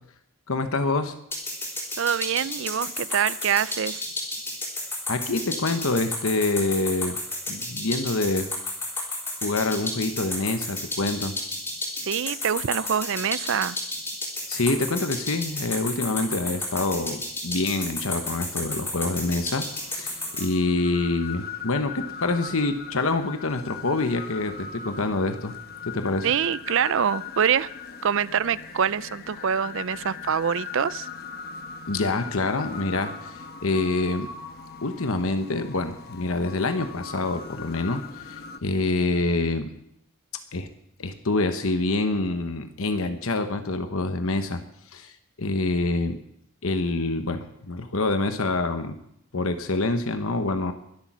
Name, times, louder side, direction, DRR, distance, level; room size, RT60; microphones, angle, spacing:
voice 1, 0.5-1.1 5.1-7.2 7.5-8.5 9.4-11.3 14.5-25.5 25.8-26.3 31.9-34.3 34.8-38.0 38.3-39.7 40.5-40.7 41.0-44.6 44.9-45.1 45.4-46.2 46.6-49.0 49.3-50.7, left 2 dB, 65° left, 8 dB, 1.1 m, -26 dB
sound 1, 1.3-20.5, left 2 dB, 10° left, 4.0 m, -31 dB
voice 2, 2.0-4.0 12.0-13.8 26.2-27.7 28.0-31.1, right 8 dB, 60° right, 18 dB, 0.5 m, -25 dB
sound 2, 19.4-38.6, left 6 dB, 45° left, 1.0 m, -39 dB
22.5 x 8.4 x 6.2 m, 0.75 s
head